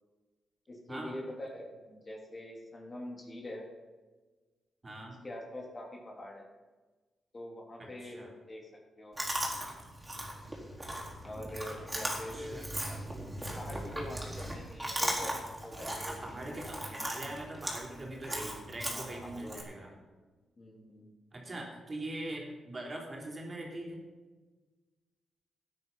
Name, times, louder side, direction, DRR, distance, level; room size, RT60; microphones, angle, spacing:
voice 1, 0.7-3.7 5.2-6.5 7.3-9.2 11.2-12.6 13.4-16.7 18.8-19.6 20.6-21.1, left 1 dB, 35° left, 0 dB, 3.3 m, -44 dB
voice 2, 4.8-5.2 7.8-8.3 12.1-12.7 16.0-19.9 21.3-24.0, right 1 dB, 35° right, -1 dB, 3.7 m, -42 dB
Chewing mastication, 9.2-19.6, right 1 dB, 15° right, 4.2 m, -38 dB
13.0 x 9.4 x 5.6 m, 1.3 s
supercardioid pair, 60°, 0 cm